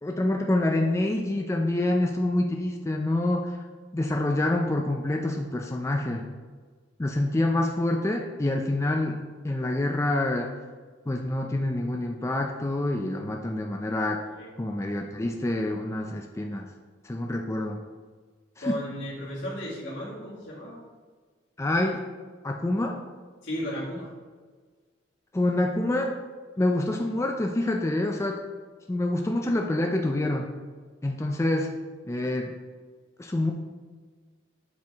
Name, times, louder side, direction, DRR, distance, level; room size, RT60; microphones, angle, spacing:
voice 1, 0.0-3.6 3.9-6.2 7.0-9.2 9.4-10.5 11.1-14.2 14.6-16.7 17.0-17.8 18.6-18.7 21.6-22.0 22.4-23.0 25.3-26.2 26.6-28.4 28.9-30.5 31.0-31.8 32.0-32.5 33.2-33.5, left 1 dB, 15° left, 2 dB, 0.4 m, -26 dB
voice 2, 18.6-20.8 23.4-24.1, equal, 80° left, -8 dB, 2.0 m, -34 dB
7.4 x 4.6 x 3.5 m, 1.5 s
head